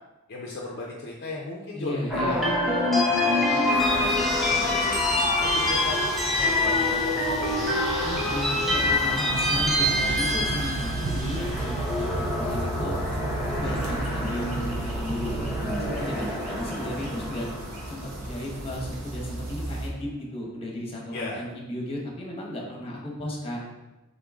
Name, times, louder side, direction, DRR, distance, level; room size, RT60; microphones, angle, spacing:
voice 1, 0.3-5.0 5.4-6.1 6.4-7.8 21.1-21.4, left 2 dB, 50° left, -2 dB, 0.6 m, -35 dB
voice 2, 1.7-2.5 8.0-12.9 13.4-17.5 17.9-23.6, left 1 dB, 25° left, -2 dB, 0.9 m, -35 dB
sound 1, 2.1-18.3, left 1 dB, ahead, 0.7 m, -26 dB
sound 2, 3.7-19.9, right 1 dB, 90° right, 0.9 m, -38 dB
sound 3, 9.3-16.0, right 2 dB, 55° right, 0.3 m, -33 dB
3.8 x 3.7 x 3.6 m, 1.0 s
head